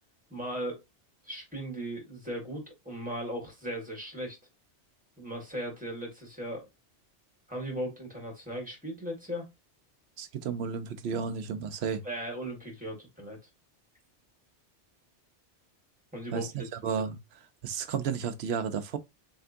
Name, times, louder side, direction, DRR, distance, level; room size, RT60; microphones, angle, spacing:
voice 1, 0.3-0.8 1.2-4.4 5.2-6.7 7.5-9.5 12.0-13.4 16.1-16.7, right 1 dB, 5° right, 1.9 m, -37 dB
voice 2, 10.2-12.0 16.3-19.0, right 6 dB, 70° right, 0.9 m, -33 dB
4.3 x 3.4 x 2.6 m
omnidirectional pair, 1.2 m